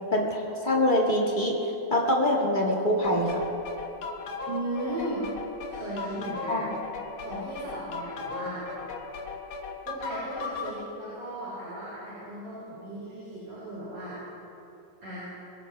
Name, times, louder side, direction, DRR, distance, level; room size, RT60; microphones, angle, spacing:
voice 1, 0.1-1.6 1.9-3.4 6.5-6.7, left 1 dB, 30° left, -2 dB, 0.9 m, -24 dB
sound 1, 3.0-10.8, left 4 dB, 65° left, 1.3 m, -37 dB
voice 2, 4.5-5.2 5.7-6.7 7.2-8.7 9.8-14.2 15.0-15.3, right 1 dB, 45° right, -11 dB, 5.7 m, -36 dB
23.5 x 16.0 x 3.3 m, 2.9 s
omnidirectional pair, 3.8 m